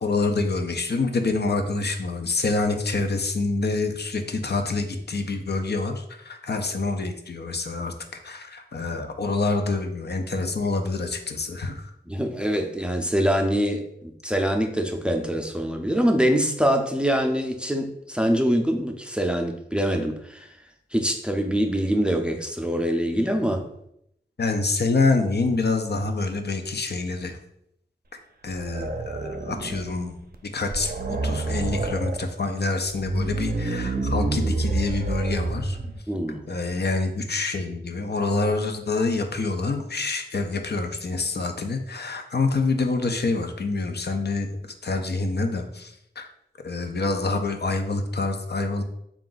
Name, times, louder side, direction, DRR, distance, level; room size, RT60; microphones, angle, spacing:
voice 1, 0.0-11.9 24.4-27.4 28.1-30.1 30.5-35.8 36.5-46.3 46.6-48.8, left 3 dB, 65° left, 5 dB, 0.5 m, -26 dB
voice 2, 12.1-20.5 20.9-23.7 36.1-36.5, equal, 5° right, 4 dB, 0.5 m, -24 dB
sound 1, 28.5-30.0 30.3-30.4 30.7-32.2 32.9-36.0, right 2 dB, 55° right, 0.5 m, -28 dB
3.7 x 2.4 x 3.9 m, 0.75 s
wide cardioid pair, 50°, 18 cm